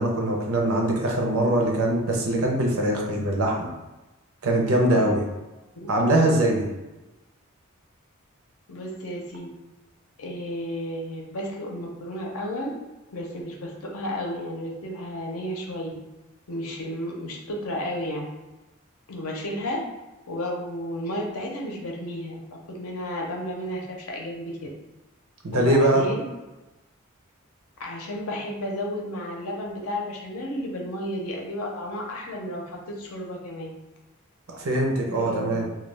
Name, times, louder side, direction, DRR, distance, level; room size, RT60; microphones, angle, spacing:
voice 1, 0.0-3.7 4.4-5.2 5.9-6.7 25.4-26.1 34.5-35.7, right 1 dB, 80° right, 0 dB, 0.6 m, -22 dB
voice 2, 8.7-9.5 10.2-12.7 13.1-15.9 16.5-18.3 19.1-19.8 20.3-22.4 22.7-24.7 25.5-26.2 27.8-33.7 35.1-35.8, left 1 dB, 90° left, 0 dB, 0.6 m, -32 dB
2.3 x 2.2 x 3.2 m, 1.1 s
head